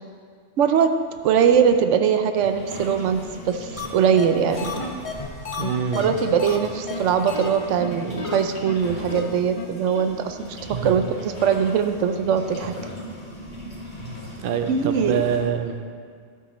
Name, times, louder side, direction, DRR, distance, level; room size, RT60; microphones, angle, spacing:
voice 1, 0.6-1.0 1.2-4.7 5.9-12.7 14.7-15.2, right 7 dB, 80° right, 8 dB, 0.9 m, -21 dB
sound 1, 2.4-15.4, equal, 55° left, 2.7 m, -38 dB
sound 2, 3.8-3.9 4.2-4.3 4.6-6.6 6.9-7.0 7.3-7.5 7.8-7.9 8.2-8.4 8.7-8.8 9.1-9.2 9.6-9.7 9.9-10.0, left 4 dB, 35° left, 0.8 m, -31 dB
voice 2, 5.6-6.1 10.7-11.0 14.4-15.9, right 7 dB, 55° right, 8 dB, 0.7 m, -25 dB
12.0 x 9.0 x 3.1 m, 2.1 s
omnidirectional pair, 1.2 m